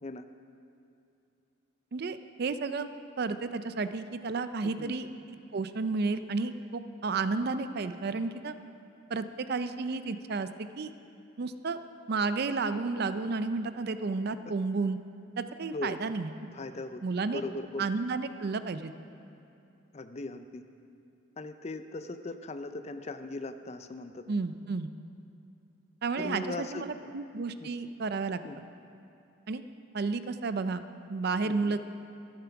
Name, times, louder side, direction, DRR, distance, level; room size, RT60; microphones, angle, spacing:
voice 1, 1.9-5.1 5.5-8.5 9.1-10.9 11.4-11.8 12.1-15.0 15.4-16.3 17.0-17.4 17.8-18.9 24.3-24.9 26.0-28.4 29.5-29.6 29.9-30.8 31.1-31.8, right 4 dB, 50° right, 11 dB, 0.4 m, -32 dB
voice 2, 16.5-17.0 17.3-17.9 19.9-20.6 21.4-24.2 26.2-27.1 27.6-27.7 28.4-28.6 31.4-31.7, left 2 dB, 30° left, 10 dB, 0.4 m, -39 dB
13.0 x 10.5 x 5.9 m, 2.7 s
head